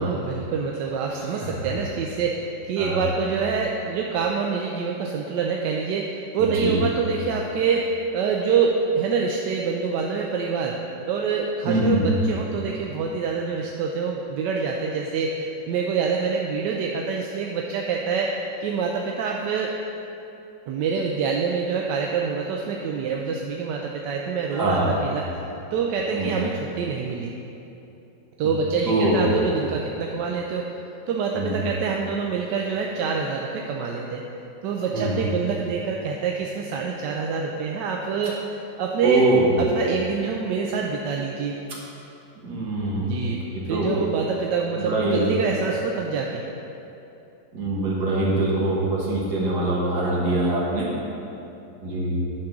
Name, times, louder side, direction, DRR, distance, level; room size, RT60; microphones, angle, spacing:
voice 1, 0.0-10.8 11.1-18.3 18.6-19.7 20.7-25.2 25.7-27.3 28.4-30.7 31.1-34.3 34.6-38.4 38.8-39.3 39.6-41.6 42.9-43.4 43.7-46.4, right 5 dB, 75° right, 0 dB, 1.1 m, -26 dB
voice 2, 11.7-12.0 24.5-24.9 26.1-26.3 28.9-29.2 31.3-31.5 34.9-35.1 39.0-39.5 42.4-43.2 43.7-43.9 44.8-45.3 47.5-50.9 51.8-52.2, right 2 dB, 60° right, -5 dB, 2.0 m, -23 dB
10.5 x 3.6 x 6.0 m, 2.9 s
omnidirectional pair, 2.0 m